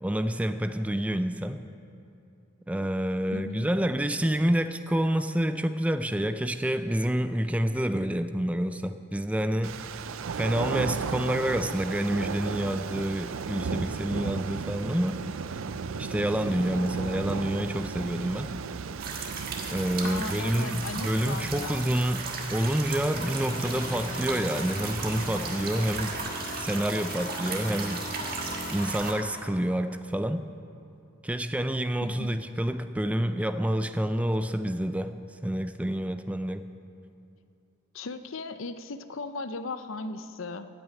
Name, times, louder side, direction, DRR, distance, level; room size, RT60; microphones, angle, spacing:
voice 1, 0.0-1.6 2.7-9.8 10.3-15.2 16.0-18.5 19.7-26.1 26.6-28.0 28.7-30.4 31.2-35.1 35.4-36.6, right 1 dB, 5° right, 10 dB, 0.4 m, -28 dB
voice 2, 3.3-3.7 20.0-21.9 32.0-32.4 37.9-40.7, left 3 dB, 70° left, 11 dB, 0.6 m, -37 dB
sound 1, 9.6-26.2, right 5 dB, 70° right, 0.4 m, -36 dB
sound 2, 19.0-29.1, right 4 dB, 45° right, 1.5 m, -36 dB
sound 3, 23.2-29.7, left 1 dB, 40° left, 0.8 m, -39 dB
14.0 x 6.3 x 9.1 m, 2.8 s
head